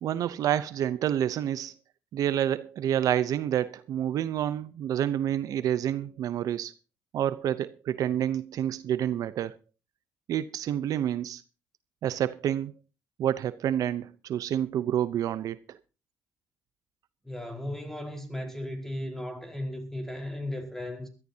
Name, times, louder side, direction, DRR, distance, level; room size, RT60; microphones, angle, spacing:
voice 1, 0.0-1.7 2.1-6.7 7.1-9.5 10.3-11.4 12.0-12.7 13.2-15.8, right 10 dB, 65° right, 0.7 m, -28 dB
voice 2, 17.2-21.1, left 1 dB, 5° left, 4.5 m, -36 dB
22.0 x 13.5 x 2.8 m
cardioid pair, 90°, 7 cm